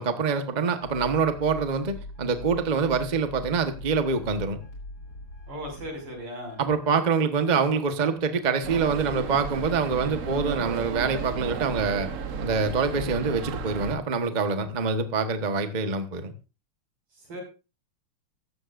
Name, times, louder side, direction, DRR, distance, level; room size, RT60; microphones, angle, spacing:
voice 1, 0.0-4.6 6.6-12.1 12.4-16.3, right 5 dB, 25° right, 8 dB, 1.0 m, -25 dB
sound 1, 0.8-7.0, left 1 dB, 45° left, 4.7 m, -42 dB
voice 2, 5.5-6.6 17.1-17.4, equal, 85° right, 2 dB, 6.4 m, -37 dB
sound 2, 8.6-14.0, right 5 dB, 55° right, 0.9 m, -33 dB
15.5 x 14.0 x 2.5 m, 0.31 s
omnidirectional pair, 2.4 m